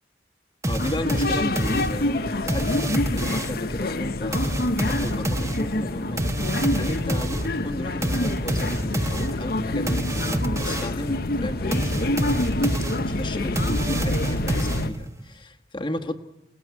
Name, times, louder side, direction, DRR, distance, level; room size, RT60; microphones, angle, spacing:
sound 1, 0.6-3.7 4.3-11.1 11.7-15.2, right 1 dB, 15° right, 1.2 m, -28 dB
voice 1, 0.7-12.7 13.0-16.1, left 1 dB, 25° left, 5 dB, 1.4 m, -34 dB
sound 2, 0.8-14.9, left 2 dB, 55° left, 0.9 m, -27 dB
28.0 x 18.5 x 9.6 m, 1.0 s
head